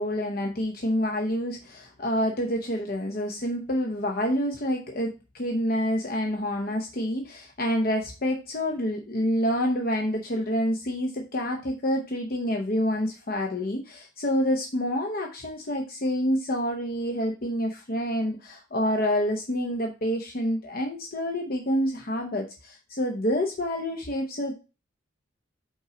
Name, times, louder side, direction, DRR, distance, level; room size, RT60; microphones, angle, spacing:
voice 1, 0.0-24.5, equal, 45° left, 2 dB, 0.8 m, -28 dB
5.5 x 4.6 x 4.9 m, 0.31 s
head